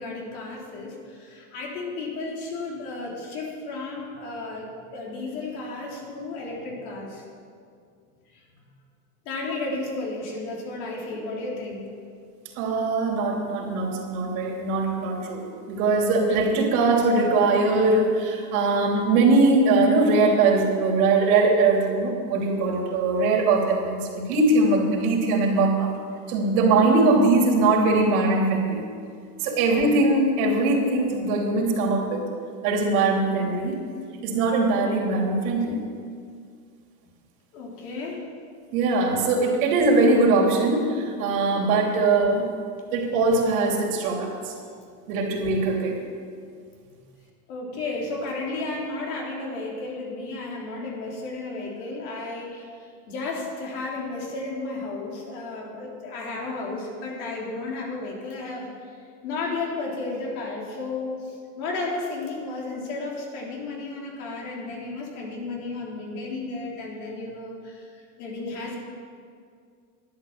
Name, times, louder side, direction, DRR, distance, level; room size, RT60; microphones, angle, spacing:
voice 1, 0.0-7.2 8.3-8.4 9.3-11.9 37.5-38.2 46.8-47.0 47.5-58.7 59.2-67.9 68.2-68.8, left 3 dB, 75° left, -2 dB, 3.8 m, -33 dB
voice 2, 12.6-25.9 26.3-28.8 29.4-32.3 32.6-33.8 34.2-35.8 38.7-42.5 42.9-44.5 45.1-46.0, right 3 dB, 70° right, 0 dB, 3.1 m, -21 dB
11.5 x 8.8 x 7.3 m, 2.2 s
supercardioid pair, 130°, 45 cm